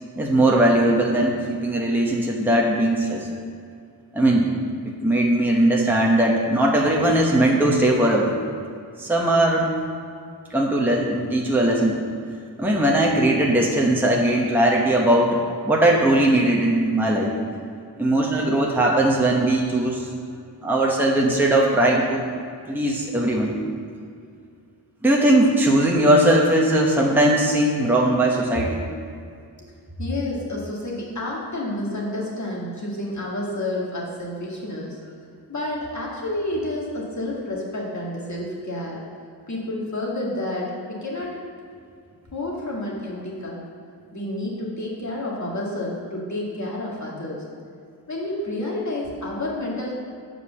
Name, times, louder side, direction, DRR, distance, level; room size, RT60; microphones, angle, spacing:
voice 1, 0.2-3.3 4.1-4.5 4.9-8.3 9.0-9.7 10.5-12.0 12.6-17.3 18.0-20.1 20.6-22.3 22.7-23.6 25.0-28.8, right 1 dB, 5° right, -2 dB, 1.0 m, -19 dB
voice 2, 30.0-35.0 35.5-39.0 39.5-41.4 41.7-41.8 42.3-43.6 44.1-47.4 48.1-49.9, left 1 dB, 45° left, -4 dB, 2.1 m, -29 dB
8.0 x 4.9 x 7.1 m, 2.3 s
wide cardioid pair, 80°, 41 cm